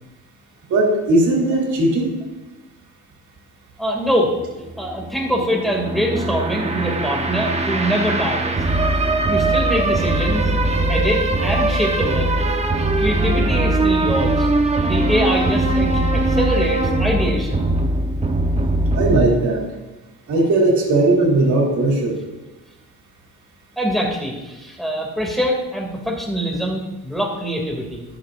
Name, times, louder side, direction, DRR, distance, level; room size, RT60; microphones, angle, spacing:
voice 1, 0.7-2.1 18.9-19.6 20.3-22.2, right 2 dB, 75° right, -2 dB, 2.9 m, -17 dB
voice 2, 3.8-4.3 4.8-8.6 9.3-10.4 10.9-12.3 13.0-14.5 14.9-17.7 23.8-28.0, equal, ahead, -1 dB, 2.6 m, -23 dB
sound 1, 4.1-19.3, right 2 dB, 20° right, 1.1 m, -20 dB
20.0 x 6.8 x 2.6 m, 1.1 s
cardioid pair, 90°, 30 cm